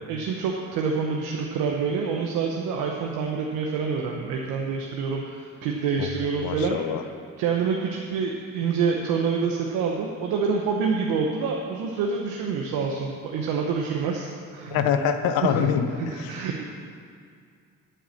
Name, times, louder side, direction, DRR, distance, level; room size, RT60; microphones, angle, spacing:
voice 1, 0.1-6.8 7.4-14.8 15.4-15.5 16.0-16.7, right 5 dB, 90° right, 0 dB, 0.9 m, -27 dB
voice 2, 6.4-7.0 14.7-16.4, left 7 dB, 85° left, 8 dB, 0.8 m, -25 dB
9.2 x 8.6 x 6.5 m, 2.2 s
supercardioid pair, 50°, 35 cm